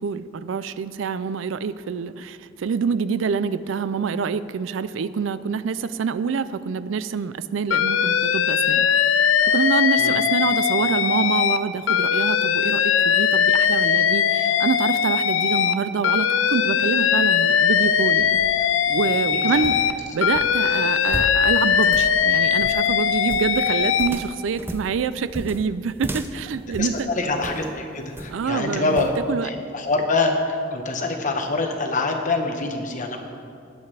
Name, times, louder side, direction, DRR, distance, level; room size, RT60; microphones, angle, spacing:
voice 1, 0.0-8.9 9.5-18.4 18.9-19.8 20.1-27.1 28.3-29.5, right 5 dB, 75° right, 15 dB, 0.4 m, -26 dB
Alarm, 7.7-11.6 11.9-15.7 16.0-19.9 20.2-24.1, left 8 dB, 80° left, 0.5 m, -20 dB
sound 1, 18.0-27.7 28.2-28.5 29.0-29.2, right 1 dB, 10° right, 0.5 m, -36 dB
voice 2, 19.3-19.6 26.8-29.1 29.4-33.2, left 3 dB, 40° left, 3 dB, 1.1 m, -25 dB
19.5 x 8.1 x 3.3 m, 2.4 s
head